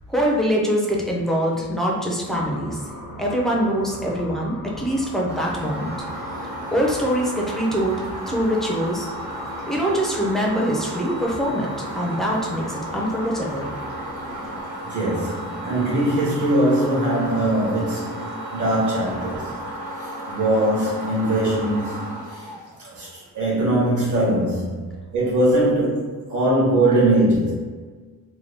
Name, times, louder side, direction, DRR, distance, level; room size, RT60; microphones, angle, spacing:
voice 1, 0.1-2.8 3.2-5.9 6.7-9.1 9.7-13.7, equal, ahead, -3 dB, 0.5 m, -23 dB
sound 1, 2.3-14.6, left 1 dB, 85° left, 0.9 m, -39 dB
sound 2, 5.3-23.2, right 1 dB, 85° right, 1.3 m, -34 dB
voice 2, 14.8-19.5 20.0-22.5 22.9-27.5, right 1 dB, 55° right, -6 dB, 1.4 m, -21 dB
3.4 x 2.2 x 3.4 m, 1.5 s
wide cardioid pair, 160°, 36 cm